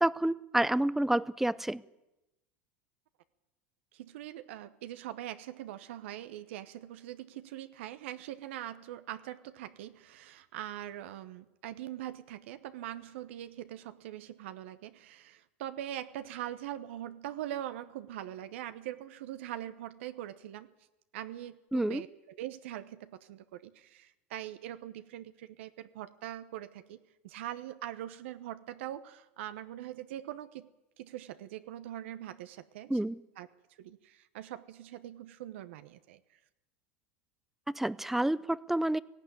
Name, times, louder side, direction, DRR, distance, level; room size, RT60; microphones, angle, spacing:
voice 1, 0.0-1.8 21.7-22.0 32.9-33.2 37.7-39.0, right 1 dB, 5° right, 0.6 m, -29 dB
voice 2, 3.9-20.7 21.1-27.0 27.2-30.7 31.0-33.0 33.4-33.5 33.8-36.4, right 12 dB, 80° right, 1.0 m, -42 dB
18.0 x 15.5 x 9.6 m
supercardioid pair, 110°, 7 cm